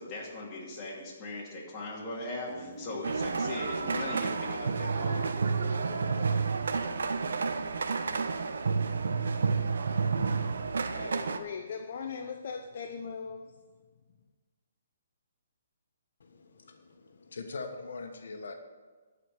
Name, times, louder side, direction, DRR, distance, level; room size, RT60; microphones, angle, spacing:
voice 1, 0.0-5.3, left 2 dB, 20° left, -5 dB, 2.5 m, -39 dB
sound 1, 2.5-6.5, right 1 dB, 20° right, 1.8 m, -45 dB
sound 2, 3.0-11.4, right 4 dB, 80° right, 0.8 m, -30 dB
voice 2, 10.9-13.5, left 6 dB, 50° left, 4 dB, 0.8 m, -39 dB
voice 3, 16.2-18.5, left 3 dB, 75° left, 5 dB, 1.3 m, -42 dB
11.5 x 5.1 x 8.2 m, 1.4 s
hypercardioid pair, 165°, 0 cm